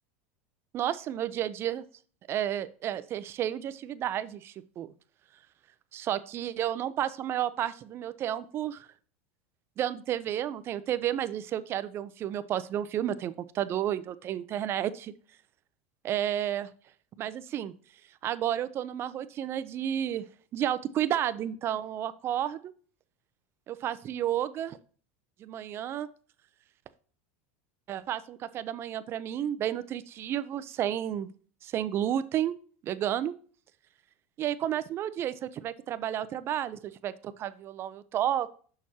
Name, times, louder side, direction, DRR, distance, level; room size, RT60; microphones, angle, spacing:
voice 1, 0.7-1.8 2.3-4.9 5.9-8.9 9.8-15.1 16.0-16.7 17.2-17.7 18.2-20.3 20.5-22.7 23.7-24.8 25.4-26.1 27.9-31.3 31.6-32.5 32.8-33.3 34.4-38.5, right 11 dB, 40° right, 14 dB, 0.5 m, -31 dB
6.6 x 5.9 x 2.8 m, 0.43 s
supercardioid pair, 120°, 7 cm